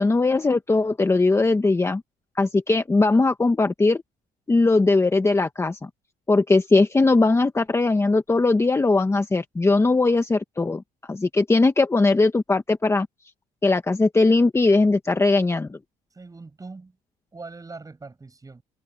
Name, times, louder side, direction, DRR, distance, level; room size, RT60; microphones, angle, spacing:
voice 1, 0.0-2.0 2.4-4.0 4.5-5.9 6.3-10.8 11.1-13.1 13.6-15.8, left 3 dB, 15° left, 1.3 m, -20 dB
voice 2, 16.2-16.9 17.3-18.6, right 3 dB, 20° right, 7.8 m, -41 dB
cardioid pair, 110°, 17 cm